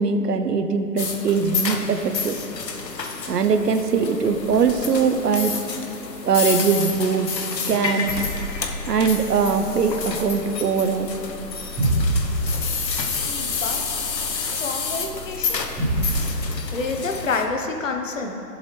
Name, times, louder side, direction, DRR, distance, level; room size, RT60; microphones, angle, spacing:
voice 1, 0.0-2.4 3.3-5.5 6.2-7.4 7.7-8.3 8.9-11.1, right 5 dB, 75° right, 8 dB, 0.9 m, -21 dB
sound 1, 1.0-17.4, left 5 dB, 85° left, 1.2 m, -30 dB
sound 2, 8.1-16.2, right 1 dB, 5° right, 1.1 m, -29 dB
voice 2, 13.2-13.8 14.4-15.6 16.3-18.4, left 4 dB, 50° left, 3 dB, 1.1 m, -29 dB
15.5 x 7.4 x 3.3 m, 2.8 s
hypercardioid pair, 155°, 49 cm